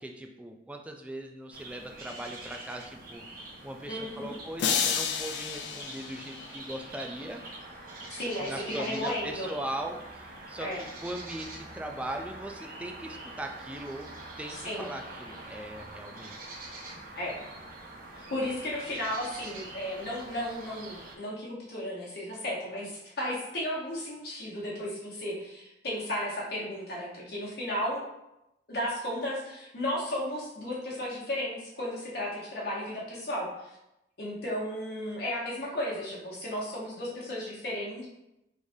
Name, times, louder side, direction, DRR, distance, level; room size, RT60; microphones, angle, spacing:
voice 1, 0.0-3.2 3.6-7.4 8.4-14.1 14.4-16.5, right 1 dB, 10° right, 3 dB, 0.3 m, -39 dB
sound 1, 1.5-21.2, right 2 dB, 55° right, 0.7 m, -45 dB
voice 2, 3.9-4.3 8.1-9.5 10.6-10.8 14.5-14.9 17.2-17.4 18.2-28.0 28.7-33.8 34.2-38.1, left 1 dB, 65° left, -5 dB, 1.1 m, -34 dB
sound 2, 4.6-6.9, left 7 dB, 80° left, 0.3 m, -31 dB
3.5 x 3.2 x 2.6 m, 0.90 s
head